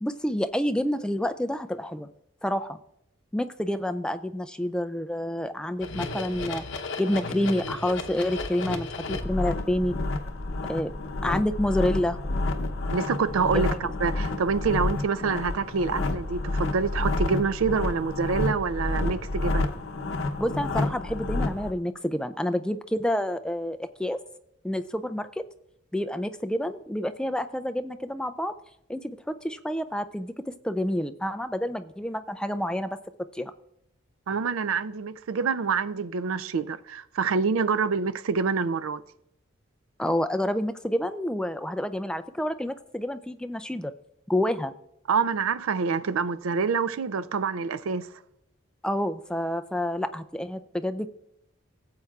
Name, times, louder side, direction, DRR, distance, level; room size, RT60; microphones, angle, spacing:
voice 1, 0.0-2.1 2.4-2.8 3.3-6.6 7.0-9.9 10.7-10.9 11.2-12.2 13.5-13.8 20.4-24.2 24.6-25.4 25.9-28.5 28.9-33.0 33.3-33.5 40.0-43.9 44.3-44.7 48.8-51.1, left 1 dB, 5° left, 0.3 m, -28 dB
sound 1, 5.8-21.7, left 2 dB, 70° left, 0.8 m, -30 dB
voice 2, 12.9-19.7 34.3-39.0 45.1-48.1, right 5 dB, 90° right, 0.4 m, -26 dB
16.5 x 7.8 x 2.4 m
head